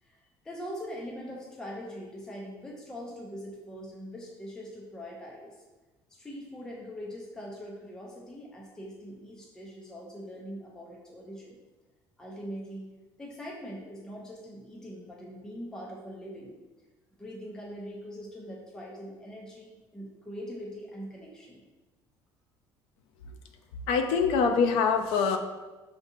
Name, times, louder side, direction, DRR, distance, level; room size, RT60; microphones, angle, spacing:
voice 1, 0.0-5.6 6.1-11.6 12.2-12.9 13.2-16.6 17.2-21.6, equal, 5° left, -3 dB, 0.4 m, -42 dB
voice 2, 23.9-25.4, left 5 dB, 85° left, 5 dB, 0.4 m, -24 dB
5.9 x 2.7 x 2.6 m, 1.2 s
cardioid pair, 180°, 9 cm